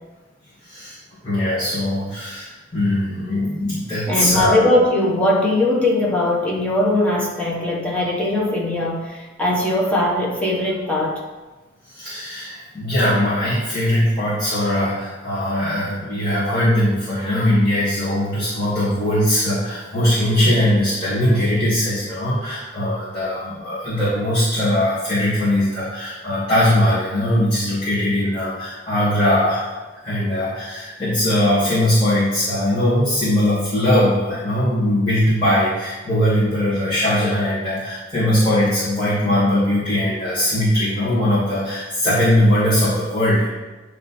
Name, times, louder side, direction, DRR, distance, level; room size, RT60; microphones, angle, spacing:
voice 1, 0.6-1.0 1.2-4.6 11.8-29.7 30.0-43.5, left 1 dB, 20° left, -12 dB, 1.8 m, -20 dB
voice 2, 4.1-11.2, left 1 dB, 5° left, -4 dB, 1.0 m, -20 dB
9.0 x 3.3 x 4.2 m, 1.2 s
head